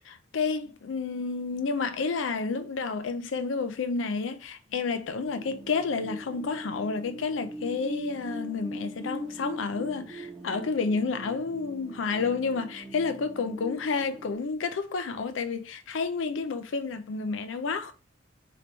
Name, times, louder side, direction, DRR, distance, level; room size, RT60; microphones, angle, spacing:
voice 1, 0.0-17.9, left 4 dB, 85° left, 0.5 m, -30 dB
sound 1, 5.3-14.4, equal, ahead, 1.0 m, -41 dB
3.4 x 2.9 x 3.9 m
head